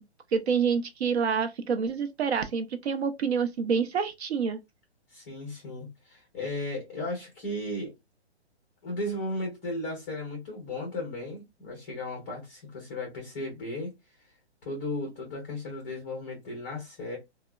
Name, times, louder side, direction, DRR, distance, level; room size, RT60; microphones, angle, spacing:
voice 1, 0.3-4.6, right 6 dB, 70° right, 0.7 m, -27 dB
voice 2, 5.1-7.9 8.8-13.9 14.6-17.2, left 1 dB, 10° left, 0.4 m, -35 dB
3.5 x 2.1 x 2.2 m
hypercardioid pair, 150°, 34 cm